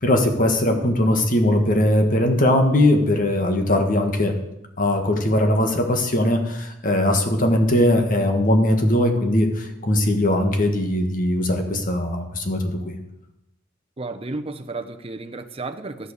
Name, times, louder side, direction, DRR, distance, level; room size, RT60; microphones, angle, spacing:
voice 1, 0.0-4.4 4.8-12.9, left 1 dB, 45° left, 4 dB, 1.7 m, -20 dB
voice 2, 14.0-16.1, right 3 dB, 30° right, 7 dB, 0.8 m, -32 dB
12.5 x 8.1 x 6.6 m, 0.88 s
head